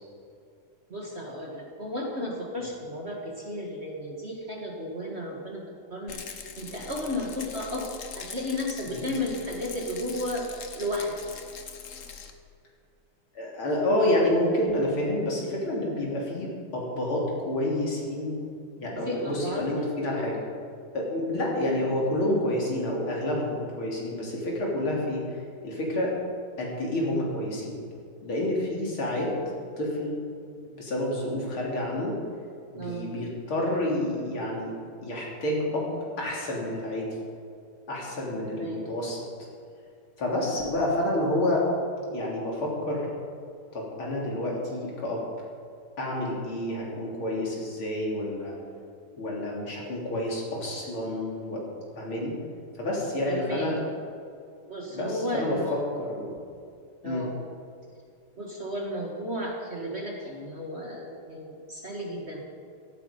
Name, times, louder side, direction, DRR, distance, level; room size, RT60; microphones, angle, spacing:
voice 1, 0.9-5.6 5.9-7.9 8.2-10.5 10.8-11.1 19.0-19.9 32.7-33.1 38.3-38.8 53.3-53.8 54.7-55.8 57.0-57.3 58.4-62.4, left 1 dB, 30° right, -1 dB, 1.9 m, -34 dB
Rattle, 6.1-12.3, left 6 dB, 45° left, 1.2 m, -42 dB
voice 2, 13.4-18.3 18.8-20.4 20.9-25.2 25.6-26.2 26.6-27.8 28.2-29.3 29.8-30.2 30.7-32.2 32.7-34.7 35.0-37.1 37.9-39.2 40.2-41.7 42.1-43.1 43.7-45.2 46.0-48.6 49.2-51.6 52.0-52.3 52.8-53.8 54.9-56.3 57.0-57.3, left 1 dB, 70° left, -3 dB, 4.2 m, -29 dB
16.5 x 14.0 x 5.3 m, 2.4 s
omnidirectional pair, 2.4 m